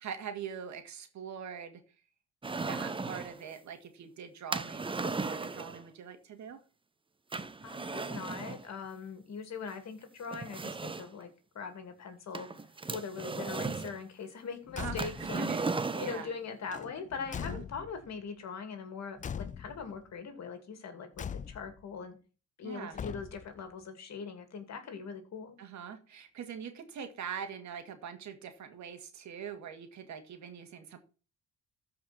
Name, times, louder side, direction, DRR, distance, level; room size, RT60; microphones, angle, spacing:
voice 1, 0.0-1.8 2.5-6.6 14.8-16.3 17.4-17.6 22.6-23.0 25.6-31.0, right 7 dB, 65° right, 7 dB, 2.1 m, -43 dB
sound 1, 2.4-3.4 4.5-5.8 7.3-8.6 9.7-9.8 10.3-11.2 12.3-14.0 15.0-16.3, right 3 dB, 15° right, 0.7 m, -36 dB
voice 2, 7.6-11.3 11.5-12.5 12.9-15.5 15.9-22.2 22.6-25.6, left 5 dB, 60° left, 7 dB, 2.6 m, -41 dB
Car / Truck / Slam, 14.7-15.4 16.7-18.1 19.2-20.0 21.2-21.8 22.9-23.6, left 7 dB, 25° left, 0.3 m, -41 dB
13.5 x 5.1 x 4.3 m, 0.35 s
cardioid pair, 90°, 30 cm